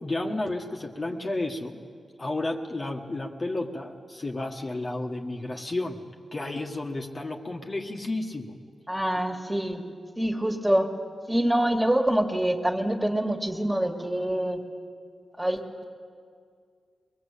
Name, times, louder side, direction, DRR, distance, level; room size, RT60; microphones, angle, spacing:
voice 1, 0.0-1.8 2.2-6.0 6.3-8.5, left 2 dB, 30° left, 0 dB, 1.6 m, -32 dB
voice 2, 8.9-9.9 10.2-10.9 11.3-14.6 15.4-15.8, right 1 dB, 10° right, 2 dB, 2.3 m, -25 dB
23.0 x 21.5 x 8.5 m, 2.1 s
wide cardioid pair, 95°, 0 cm